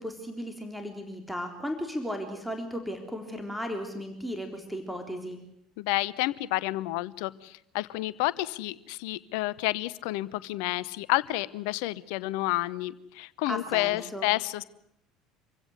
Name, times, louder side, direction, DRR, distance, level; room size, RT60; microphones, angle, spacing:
voice 1, 0.0-5.4 13.5-14.3, equal, ahead, 5 dB, 3.8 m, -35 dB
voice 2, 5.8-14.6, left 18 dB, 65° left, 20 dB, 0.9 m, -30 dB
26.0 x 16.0 x 9.7 m, 0.77 s
figure-of-eight pair, 65°, 3 cm